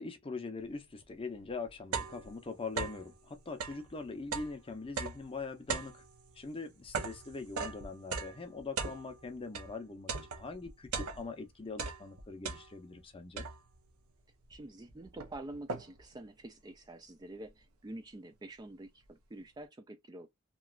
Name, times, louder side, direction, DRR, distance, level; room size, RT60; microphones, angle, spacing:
voice 1, 0.0-5.9 6.4-13.5, left 3 dB, 25° left, 0.6 m, -42 dB
sound 1, 1.0-1.1 1.5-3.1 3.5-9.8 10.1-11.5 11.7-13.0 13.4-13.9 14.5-14.6 14.9-16.1, right 5 dB, 85° right, 0.6 m, -39 dB
voice 2, 14.5-20.3, right 1 dB, 20° right, 0.3 m, -47 dB
3.0 x 2.3 x 2.3 m
head